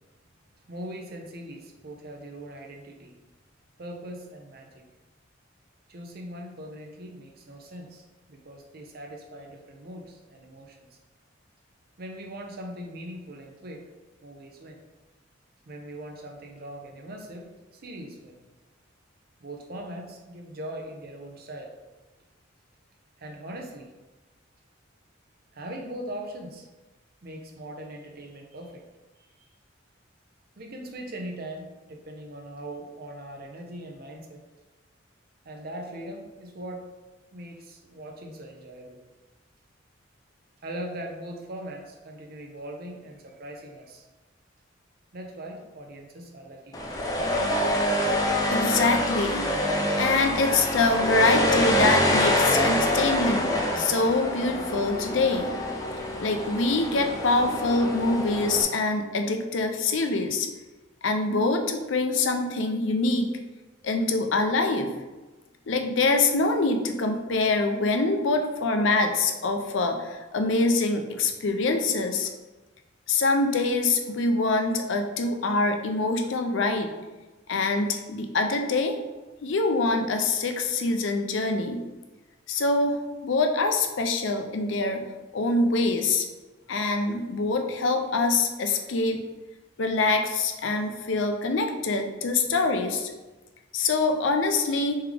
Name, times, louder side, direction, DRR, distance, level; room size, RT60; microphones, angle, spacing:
voice 1, 0.7-3.1 3.8-4.8 5.9-11.0 12.0-13.9 14.2-14.8 15.7-18.4 19.4-21.7 23.2-23.9 25.5-26.7 27.2-28.8 29.3-29.5 30.6-34.4 35.4-36.9 37.3-39.0 40.6-44.0 45.1-47.0, right 1 dB, 50° right, 2 dB, 0.6 m, -40 dB
sound 1, 46.7-58.6, left 1 dB, 20° left, 0.5 m, -26 dB
voice 2, 48.5-49.5 50.0-55.6 56.2-60.5 61.0-63.3 63.8-64.9 65.7-72.3 73.1-76.9 77.5-79.0 79.4-81.8 82.5-83.0 83.2-85.1 85.3-86.3 86.7-89.2 89.8-93.1 93.7-95.0, left 3 dB, 70° left, 5 dB, 0.5 m, -25 dB
3.5 x 3.3 x 3.4 m, 1.2 s
head